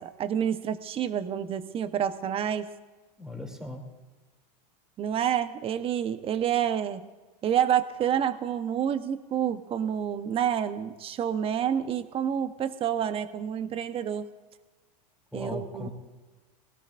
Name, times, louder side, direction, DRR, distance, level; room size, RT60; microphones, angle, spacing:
voice 1, 0.0-2.7 5.0-7.1 7.4-14.3 15.3-15.9, right 9 dB, 25° right, 11 dB, 1.0 m, -28 dB
voice 2, 3.2-3.8 15.3-15.9, left 2 dB, 5° right, 1 dB, 2.8 m, -37 dB
21.5 x 18.0 x 2.6 m, 1.3 s
hypercardioid pair, 125°, 21 cm